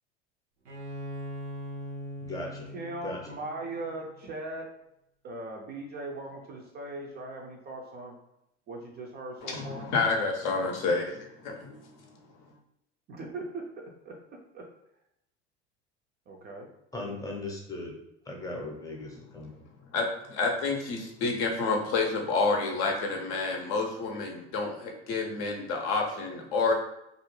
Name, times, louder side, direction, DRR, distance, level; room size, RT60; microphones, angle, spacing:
Bowed string instrument, 0.7-4.3, equal, 80° right, 0.6 m, -41 dB
voice 1, 2.2-2.7 3.0-3.4 16.9-17.9 18.3-19.6, left 2 dB, 10° left, -1 dB, 0.7 m, -38 dB
voice 2, 2.7-4.7 5.2-8.1 8.7-9.9 13.1-14.2 14.5-14.7 16.3-16.7, right 2 dB, 30° right, 0 dB, 0.4 m, -39 dB
voice 3, 9.4-12.1 19.9-26.7, left 3 dB, 50° left, 1 dB, 0.6 m, -29 dB
2.4 x 2.1 x 3.1 m, 0.81 s
figure-of-eight pair, 70°, 34 cm